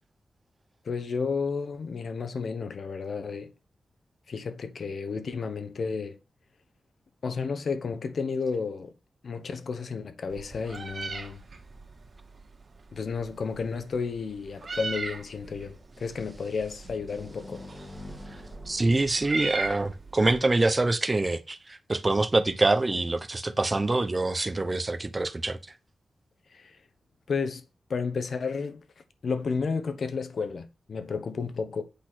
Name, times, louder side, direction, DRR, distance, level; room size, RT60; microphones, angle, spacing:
voice 1, 0.8-3.5 4.3-6.2 7.2-8.9 9.2-11.4 12.9-17.7 26.5-26.8 27.3-27.6 27.9-28.8 29.2-31.8, left 5 dB, 70° left, 1.1 m, -32 dB
Meow, 10.3-20.4, right 4 dB, 55° right, 2.1 m, -39 dB
sound 1, 16.8-20.4, left 2 dB, 30° left, 2.2 m, -47 dB
voice 2, 18.7-25.6, right 2 dB, 30° right, 0.9 m, -25 dB
8.4 x 4.1 x 6.2 m
cardioid pair, 70°, 0 cm